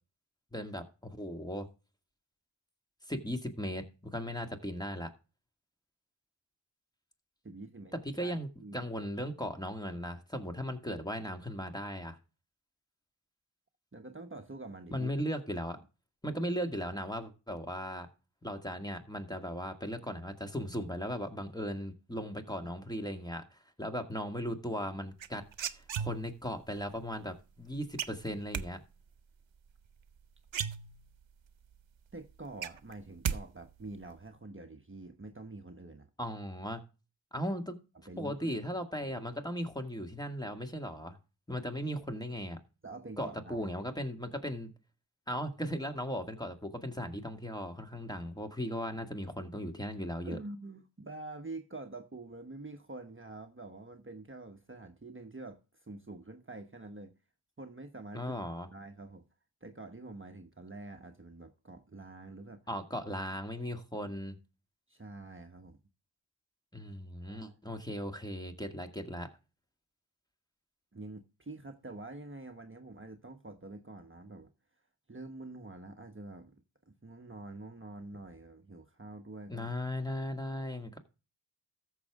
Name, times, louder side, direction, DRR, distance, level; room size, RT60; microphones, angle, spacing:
voice 1, 0.5-1.7 3.1-5.1 7.9-12.2 14.9-15.8 16.2-18.1 18.4-25.4 25.7-28.8 36.2-36.8 37.3-37.8 38.2-41.2 41.5-42.6 43.2-44.7 45.3-50.4 58.1-58.7 62.7-64.4 66.7-69.3 79.5-81.0, equal, 10° left, 2.0 m, -37 dB
voice 2, 7.4-7.9 8.2-8.9 13.9-15.1 32.1-36.1 38.1-38.8 42.8-43.8 50.2-57.1 57.6-58.3 58.7-59.3 59.6-62.7 63.6-63.7 64.0-64.1 64.9-65.8 67.2-67.8 70.9-74.5 75.1-79.7, right 2 dB, 25° right, 1.1 m, -47 dB
sound 1, 25.2-26.5 28.0-28.7 30.1-30.2 30.5-31.3 31.7-31.8 32.1-33.4 33.6-34.1, right 8 dB, 75° right, 0.8 m, -35 dB
14.0 x 6.6 x 3.6 m
cardioid pair, 45°, 46 cm